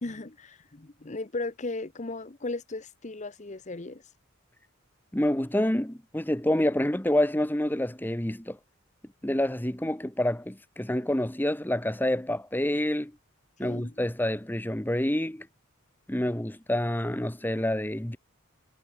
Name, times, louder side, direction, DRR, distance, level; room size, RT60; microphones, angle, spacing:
voice 1, 0.0-4.0 13.6-13.9, left 2 dB, 35° left, 0.9 m, -36 dB
voice 2, 5.1-8.6 9.2-13.1 13.6-15.5 16.1-18.2, left 1 dB, 10° left, 0.9 m, -27 dB
head